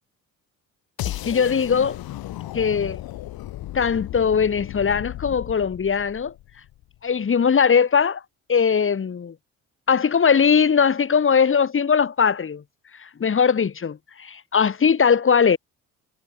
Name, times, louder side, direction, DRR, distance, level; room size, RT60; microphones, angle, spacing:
sound 1, 1.0-7.0, left 15 dB, 70° left, 2.2 m, -35 dB
voice 1, 1.0-2.0 2.5-3.0 3.7-6.3 7.0-8.2 8.5-9.3 9.9-12.6 13.0-15.6, left 6 dB, 35° left, 1.5 m, -20 dB
supercardioid pair, 60°, 37 cm